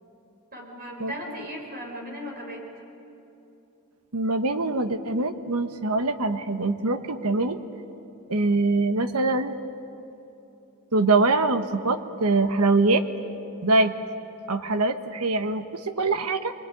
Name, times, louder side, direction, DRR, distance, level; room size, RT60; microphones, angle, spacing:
voice 1, 0.5-2.7, equal, 45° right, 0 dB, 4.2 m, -37 dB
voice 2, 4.1-7.6 8.3-9.5 10.9-13.0 13.6-13.9 14.5-16.5, right 3 dB, 80° right, 9 dB, 1.3 m, -23 dB
25.5 x 24.5 x 9.2 m, 3.0 s
head